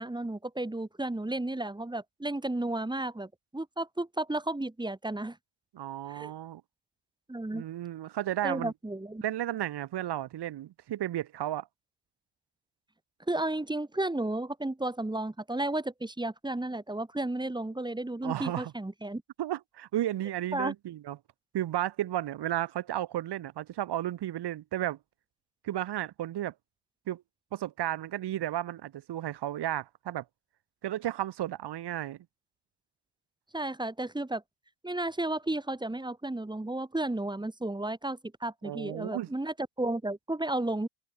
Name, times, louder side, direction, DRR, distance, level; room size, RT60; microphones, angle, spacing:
voice 1, 0.0-5.4 6.1-6.3 7.3-7.6 8.4-9.2 13.3-19.2 20.5-20.7 33.5-34.4 34.8-40.9, right 2 dB, 10° right, 2.4 m, -33 dB
voice 2, 5.7-6.6 7.5-8.7 9.2-11.7 18.2-18.7 19.4-21.2 21.5-25.0 25.6-26.5 27.1-27.2 27.5-30.2 30.8-32.2 38.6-39.3, right 12 dB, 65° right, 3.2 m, -33 dB
open air
supercardioid pair, 75°, 44 cm